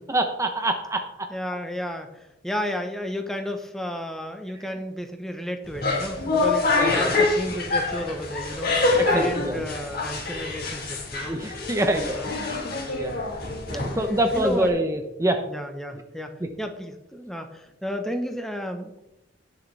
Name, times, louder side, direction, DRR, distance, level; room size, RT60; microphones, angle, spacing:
voice 1, 0.1-1.0 6.8-7.1 9.1-9.6 11.2-12.6 12.9-13.1 13.7-15.4, right 1 dB, 15° right, 5 dB, 0.8 m, -25 dB
voice 2, 1.3-11.3 11.8-12.6 12.9-13.5 13.9-14.0 14.3-14.7 15.5-18.9, equal, ahead, 4 dB, 1.0 m, -33 dB
sound 1, 5.6-14.7, left 3 dB, 50° left, 2.6 m, -26 dB
18.5 x 6.6 x 3.4 m, 0.89 s
head